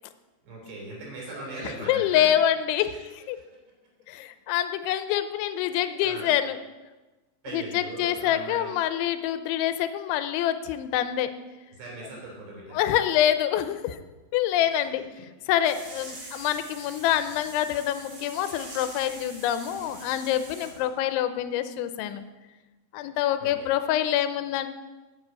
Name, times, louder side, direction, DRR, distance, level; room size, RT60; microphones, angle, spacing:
voice 1, 0.4-2.3 2.8-3.0 3.4-3.5 6.0-6.3 7.4-8.7 11.7-12.9 14.7-14.8 23.4-23.7, right 2 dB, 65° right, -2 dB, 5.3 m, -40 dB
voice 2, 1.6-3.4 4.1-6.6 7.5-11.3 12.7-14.0 14.3-15.0 15.5-22.3 22.9-24.7, left 11 dB, 90° left, 10 dB, 3.1 m, -26 dB
sound 1, 15.6-20.9, right 2 dB, 40° right, 3.0 m, -44 dB
9.1 x 7.6 x 8.3 m, 1.2 s
omnidirectional pair, 5.2 m